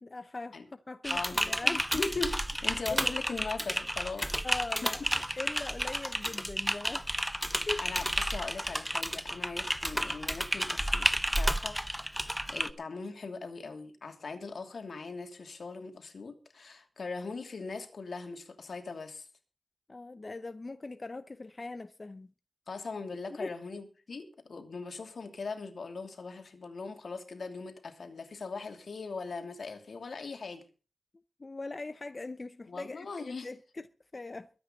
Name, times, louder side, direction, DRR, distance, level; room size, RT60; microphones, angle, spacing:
voice 1, 0.0-2.0 2.9-3.1 4.4-7.1 7.7-7.8 19.9-22.3 23.3-23.6 31.4-33.9 34.1-34.5, left 3 dB, 35° left, 0.7 m, -41 dB
Typing, 1.0-12.7, equal, 5° right, 0.8 m, -31 dB
voice 2, 1.1-2.3 2.6-4.3 4.8-4.9 7.8-19.3 22.7-30.6 32.7-33.5, left 4 dB, 80° left, 2.8 m, -40 dB
23.0 x 9.0 x 3.9 m
wide cardioid pair, 110°, 0 cm